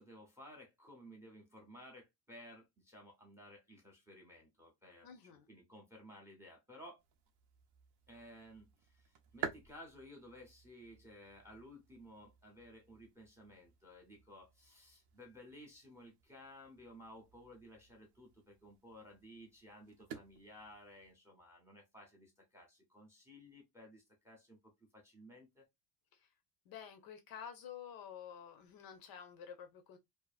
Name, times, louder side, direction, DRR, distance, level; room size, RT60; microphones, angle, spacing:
voice 1, 0.0-7.0 8.1-25.7, equal, 5° right, 0.5 m, -56 dB
voice 2, 5.0-5.5 26.1-26.3 26.7-30.0, left 8 dB, 45° left, 0.5 m, -50 dB
sound 1, 7.0-21.1, right 7 dB, 55° right, 0.6 m, -53 dB
2.5 x 2.5 x 2.3 m
cardioid pair, 160°, 49 cm